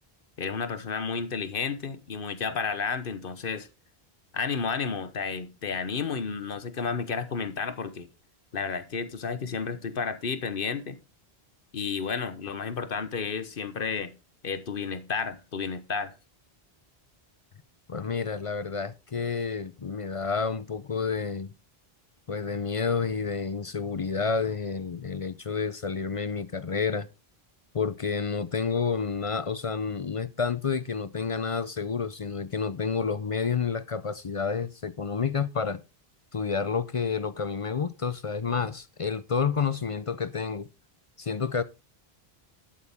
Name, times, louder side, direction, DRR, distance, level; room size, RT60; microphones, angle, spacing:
voice 1, 0.4-3.7 4.3-8.1 8.5-11.0 11.7-14.1 14.4-16.1, left 5 dB, 60° left, 1.1 m, -31 dB
voice 2, 17.9-21.5 22.3-27.1 27.7-35.8 36.3-40.7 41.2-41.6, left 5 dB, 45° left, 0.5 m, -29 dB
11.5 x 8.4 x 3.5 m
omnidirectional pair, 1.0 m